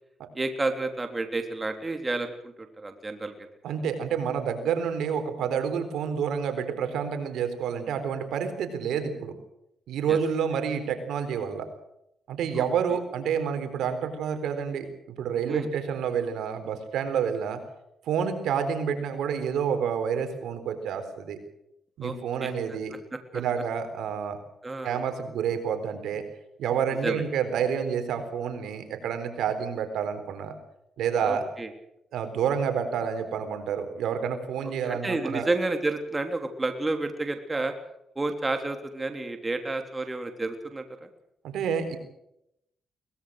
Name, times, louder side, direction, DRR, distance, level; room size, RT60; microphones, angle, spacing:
voice 1, 0.3-3.3 10.1-10.2 12.5-12.7 15.5-15.7 22.0-22.1 22.4-22.8 23.1-23.4 24.6-25.0 27.0-27.2 31.2-31.7 34.8-37.7 38.1-41.1, right 2 dB, 25° right, 6 dB, 3.3 m, -30 dB
voice 2, 3.6-9.3 9.9-11.7 12.3-17.6 18.1-21.4 22.0-22.9 23.3-24.4 24.8-26.2 26.6-30.5 31.0-31.4 32.1-35.5 41.4-42.0, right 7 dB, 90° right, 8 dB, 3.9 m, -29 dB
23.0 x 20.0 x 6.5 m, 0.79 s
cardioid pair, 85°, 0 cm